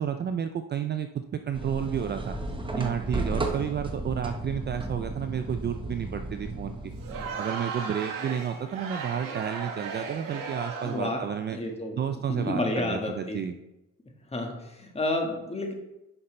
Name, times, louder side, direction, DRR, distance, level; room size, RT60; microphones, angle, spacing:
voice 1, 0.0-2.4 2.8-6.9 7.4-11.6 12.0-13.5, right 8 dB, 35° right, 8 dB, 0.4 m, -31 dB
sound 1, 1.5-7.3, right 2 dB, 15° right, 1.0 m, -34 dB
Crowd, 7.0-11.2, right 5 dB, 75° right, 1.5 m, -36 dB
voice 2, 10.8-11.2 11.5-12.0 12.3-13.4 14.3-15.7, left 1 dB, 20° left, 2 dB, 1.6 m, -30 dB
9.9 x 5.6 x 3.3 m, 0.92 s
cardioid pair, 105°, 33 cm